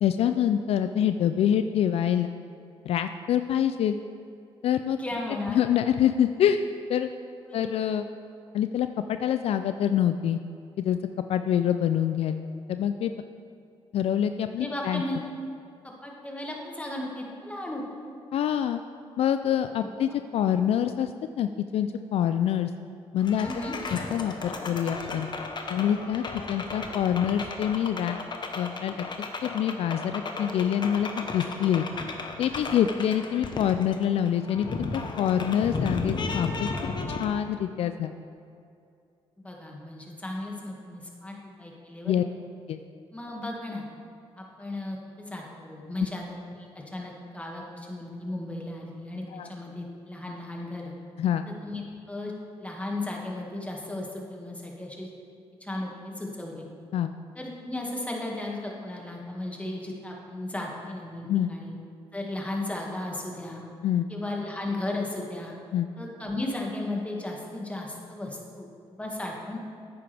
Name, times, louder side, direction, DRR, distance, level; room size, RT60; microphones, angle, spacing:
voice 1, 0.0-2.3 2.9-4.0 4.6-5.0 5.5-6.6 6.9-7.1 7.5-8.1 8.5-10.4 10.8-11.0 11.3-12.4 12.7-13.1 13.9-15.0 18.3-18.8 19.2-21.1 21.4-22.7 23.1-23.5 24.1-25.3 25.7-28.2 28.6-31.9 32.4-34.9 35.2-36.7 37.2-38.1 42.1-42.2 42.7-42.8 49.3-49.5 51.2-51.4 56.9-57.1 61.3-61.5 63.8-64.1 65.7-65.9, left 10 dB, 70° left, 9 dB, 0.4 m, -26 dB
voice 2, 4.9-5.6 7.5-7.9 14.6-15.2 16.0-17.8 19.8-20.1 23.4-23.8 39.4-42.2 43.1-43.8 44.4-50.9 51.5-51.8 52.1-52.3 52.6-55.1 55.6-56.7 57.4-61.8 62.1-63.6 64.1-65.5 66.0-69.6, left 2 dB, 10° left, -1 dB, 1.9 m, -35 dB
sound 1, 23.2-37.2, left 3 dB, 45° left, 1.0 m, -35 dB
10.5 x 8.6 x 3.4 m, 2.4 s
cardioid pair, 70°, 11 cm